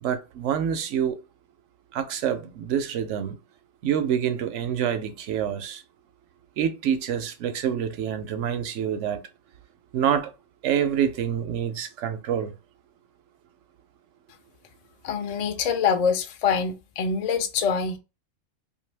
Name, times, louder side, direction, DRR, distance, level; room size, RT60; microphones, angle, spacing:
voice 1, 0.0-1.2 1.9-3.4 3.8-5.8 6.6-9.2 9.9-10.3 10.6-12.5, right 9 dB, 70° right, 0.9 m, -26 dB
voice 2, 15.0-18.0, left 6 dB, 60° left, 0.4 m, -25 dB
2.6 x 2.5 x 3.2 m
omnidirectional pair, 1.3 m